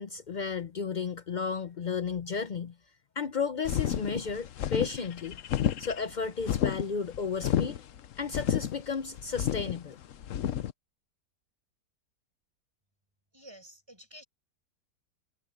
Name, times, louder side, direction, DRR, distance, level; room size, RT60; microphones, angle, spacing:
voice 1, 0.0-2.7 3.2-5.4 5.8-7.8 8.2-10.0, left 5 dB, 75° left, 0.4 m, -33 dB
sound 1, 3.6-10.7, left 10 dB, 60° left, 1.0 m, -31 dB
voice 2, 13.3-14.2, equal, 15° right, 6.2 m, -50 dB
omnidirectional pair, 1.8 m